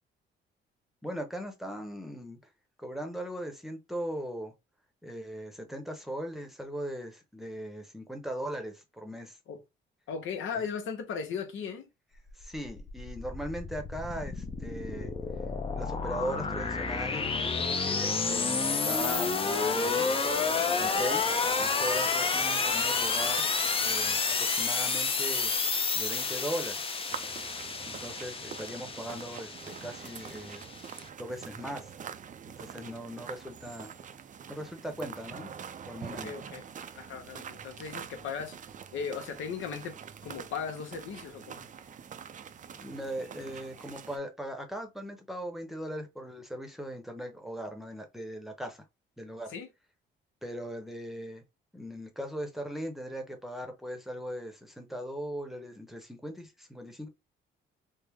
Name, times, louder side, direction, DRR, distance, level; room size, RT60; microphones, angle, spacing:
voice 1, 1.0-2.4 2.8-4.5 5.0-9.4 10.5-10.7 12.3-15.1 15.7-20.1 20.8-21.2 21.6-23.5 23.8-25.5 25.9-26.8 27.8-30.6 31.2-31.9 32.5-33.9 34.5-35.5 35.8-36.3 42.7-48.8 49.2-49.5 50.4-51.4 51.7-57.1, equal, ahead, 0.9 m, -39 dB
voice 2, 10.1-11.9 20.8-21.0 36.1-36.6 36.9-38.6 38.9-40.0 40.2-41.6 49.5-49.7, left 6 dB, 80° left, 0.9 m, -37 dB
sound 1, 12.3-31.0, left 4 dB, 30° left, 0.6 m, -30 dB
sound 2, 27.1-44.2, right 7 dB, 40° right, 0.4 m, -45 dB
3.3 x 2.0 x 3.5 m
cardioid pair, 90°, 20 cm